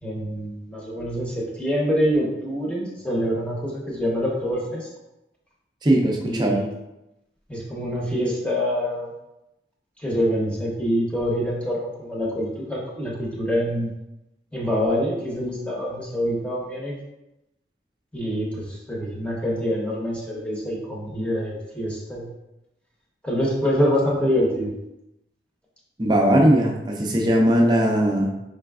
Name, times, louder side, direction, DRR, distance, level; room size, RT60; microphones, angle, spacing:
voice 1, 0.0-4.9 6.3-6.7 7.5-9.1 10.0-13.9 14.5-16.9 18.1-22.3 23.2-24.7, equal, 5° left, -4 dB, 0.8 m, -25 dB
voice 2, 5.8-6.6 26.0-28.3, right 1 dB, 25° right, 0 dB, 0.5 m, -19 dB
5.0 x 3.3 x 2.3 m, 0.93 s
head